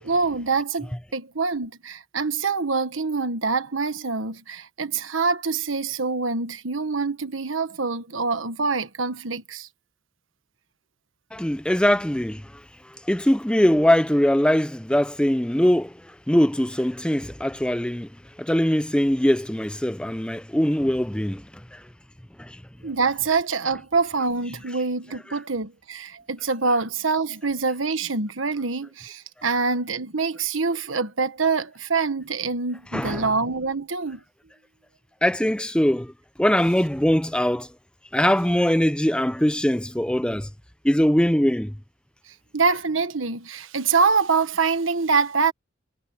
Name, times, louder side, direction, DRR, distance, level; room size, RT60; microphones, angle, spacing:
voice 1, 0.0-9.7 22.8-34.2 42.5-45.5, right 4 dB, 70° right, 1.4 m, -25 dB
voice 2, 11.3-12.5 13.0-18.1 18.4-21.4 21.7-21.8 22.4-22.6 32.9-33.3 35.2-36.1 36.4-37.7 38.1-40.5 40.8-41.7, equal, 5° left, 0.7 m, -22 dB
head